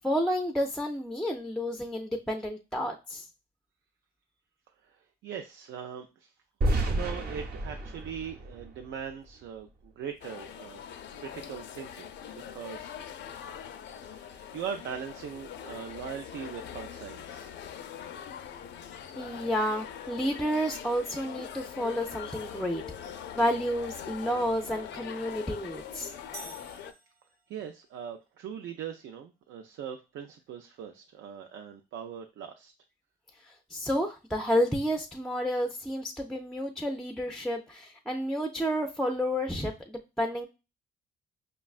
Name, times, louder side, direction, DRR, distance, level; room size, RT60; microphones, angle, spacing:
voice 1, 0.0-3.2 19.2-22.8 23.4-26.1 33.4-40.5, equal, ahead, 3 dB, 0.4 m, -30 dB
voice 2, 5.2-6.3 6.9-10.8 11.2-13.0 14.0-17.5 27.5-32.7, right 8 dB, 75° right, 5 dB, 0.4 m, -40 dB
sound 1, 6.6-9.6, right 1 dB, 50° right, 0.8 m, -31 dB
sound 2, 10.2-26.9, left 9 dB, 65° left, 0.4 m, -43 dB
sound 3, 26.3-27.7, right 1 dB, 20° right, 0.8 m, -47 dB
5.2 x 2.2 x 2.3 m, 0.29 s
cardioid pair, 90°, 20 cm